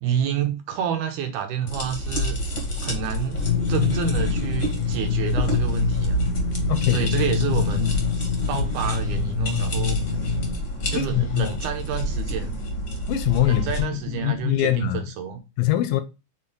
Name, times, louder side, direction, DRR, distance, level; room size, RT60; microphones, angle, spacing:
voice 1, 0.0-2.4 2.8-6.2 6.9-7.9 8.5-10.0 10.9-12.6 13.5-15.4, right 8 dB, 75° right, 2.0 m, -29 dB
sound 1, 1.7-13.8, left 1 dB, 35° left, 1.1 m, -29 dB
sound 2, 3.4-10.5, left 5 dB, 55° left, 1.4 m, -25 dB
sound 3, 3.7-14.9, equal, 30° right, 1.1 m, -43 dB
voice 2, 6.7-7.1 8.5-8.6 10.9-11.6 13.1-15.1 15.6-16.0, left 14 dB, 80° left, 2.2 m, -23 dB
6.0 x 4.2 x 3.7 m
omnidirectional pair, 4.1 m